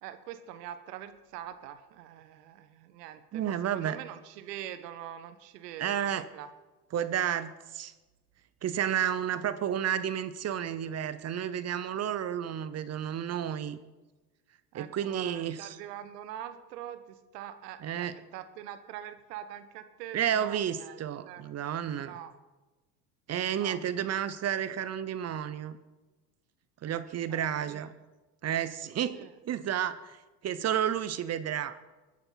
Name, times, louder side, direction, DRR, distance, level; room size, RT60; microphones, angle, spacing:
voice 1, 0.0-6.5 14.7-21.4 21.9-22.3 23.5-23.8 27.3-27.9 29.1-29.3, right 11 dB, 70° right, 11 dB, 1.4 m, -44 dB
voice 2, 3.3-4.0 5.8-6.3 6.9-7.9 8.6-13.8 14.7-15.8 17.8-18.2 20.1-22.2 23.3-25.8 26.8-27.9 28.4-30.2 30.4-31.8, right 9 dB, 30° right, 14 dB, 0.8 m, -31 dB
20.5 x 10.0 x 4.0 m, 1.2 s
hypercardioid pair, 90°, 49 cm